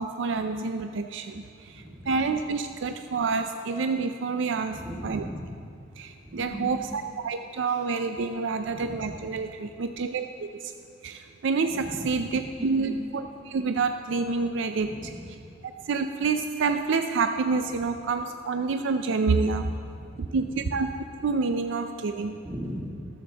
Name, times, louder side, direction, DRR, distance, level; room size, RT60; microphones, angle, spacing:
voice 1, 0.0-5.3 6.0-10.7 11.0-15.1 15.6-19.7 20.2-20.9 21.2-22.4, right 4 dB, 65° right, 7 dB, 0.4 m, -28 dB
voice 2, 1.7-2.1 4.7-5.5 6.3-6.7 8.6-9.2 11.8-12.9 14.7-15.3 19.5-20.8 22.4-23.1, equal, 15° right, -3 dB, 1.6 m, -39 dB
13.0 x 13.0 x 2.9 m, 2.4 s
head